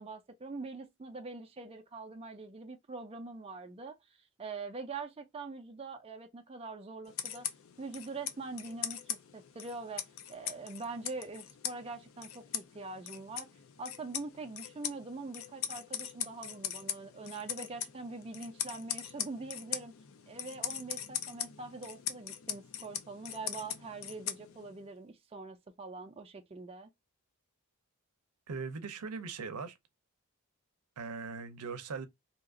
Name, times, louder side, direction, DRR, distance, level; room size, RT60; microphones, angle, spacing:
voice 1, 0.0-4.0 4.4-7.5 7.8-10.0 10.3-13.5 13.8-19.9 20.3-26.9, right 3 dB, 25° right, 0.4 m, -43 dB
sound 1, 7.1-24.8, left 9 dB, 65° left, 0.5 m, -41 dB
voice 2, 28.5-29.8 31.0-32.1, right 5 dB, 90° right, 0.6 m, -40 dB
2.8 x 2.4 x 3.6 m
head